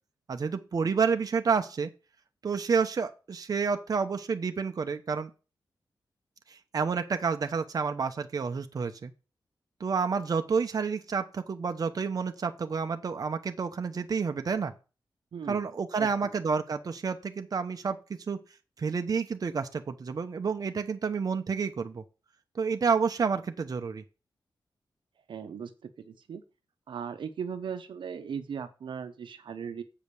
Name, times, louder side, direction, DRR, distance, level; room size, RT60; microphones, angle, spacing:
voice 1, 0.3-1.9 2.4-5.3 6.5-9.1 9.8-14.7 15.5-18.0 18.3-18.4 18.8-22.0 22.5-24.0, right 5 dB, 50° right, 7 dB, 0.9 m, -29 dB
voice 2, 16.0-16.3 25.3-26.4 26.9-29.8, right 7 dB, 80° right, 9 dB, 0.9 m, -38 dB
7.8 x 5.1 x 6.9 m, 0.33 s
wide cardioid pair, 120°, 8 cm